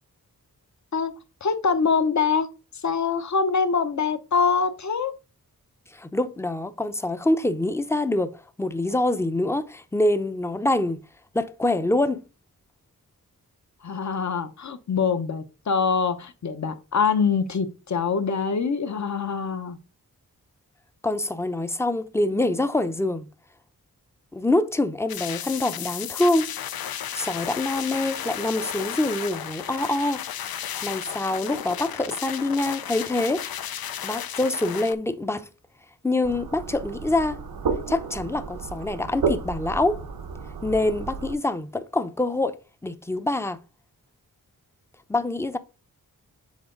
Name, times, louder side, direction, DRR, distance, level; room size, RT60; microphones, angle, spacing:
voice 1, 1.4-2.5 2.7-5.1 13.8-19.8, left 5 dB, 50° left, 0.8 m, -24 dB
voice 2, 5.9-11.0 11.3-12.3 21.0-23.3 24.3-26.5 27.1-30.2 30.8-33.4 34.0-35.5 36.0-37.4 37.9-40.0 40.6-42.6 42.8-43.6 45.1-45.6, left 2 dB, 10° left, 0.5 m, -25 dB
sound 1, 25.1-34.9, left 9 dB, 85° left, 0.5 m, -34 dB
sound 2, 36.2-41.3, right 5 dB, 80° right, 0.8 m, -32 dB
7.3 x 3.9 x 3.8 m
wide cardioid pair, 95°, 36 cm